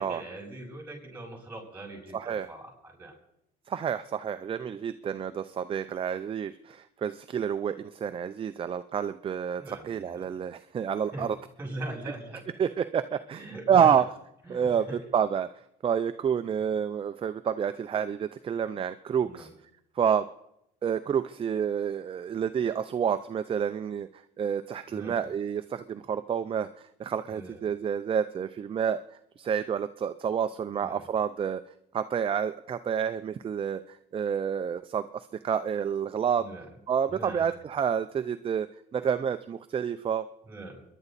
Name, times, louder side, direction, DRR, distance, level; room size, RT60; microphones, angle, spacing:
voice 1, 0.0-3.1 9.6-10.2 11.1-11.3 11.6-12.5 13.3-13.9 14.4-15.0 19.2-19.5 24.9-25.2 27.3-27.6 30.7-31.0 36.4-36.7 37.1-37.5 40.5-40.8, right 2 dB, 10° right, -1 dB, 7.9 m, -41 dB
voice 2, 2.1-2.5 3.7-11.4 12.6-14.0 14.5-14.9 15.1-15.5 15.8-19.5 20.0-20.2 20.8-24.1 24.4-26.7 27.0-29.0 29.4-31.6 31.9-33.8 34.1-36.5 36.9-38.7 38.9-40.2, right 8 dB, 30° right, 10 dB, 0.5 m, -29 dB
30.0 x 11.0 x 4.2 m, 0.80 s
cardioid pair, 110°, 17 cm